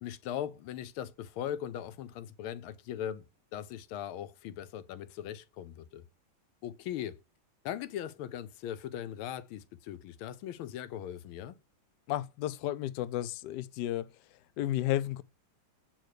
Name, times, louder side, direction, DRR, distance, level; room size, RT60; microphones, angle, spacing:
voice 1, 0.0-3.3 3.5-6.0 6.6-7.2 7.6-11.6, left 10 dB, 90° left, 1.5 m, -39 dB
voice 2, 12.1-14.1 14.6-15.2, left 13 dB, 70° left, 1.0 m, -32 dB
7.8 x 3.9 x 6.5 m
omnidirectional pair, 2.3 m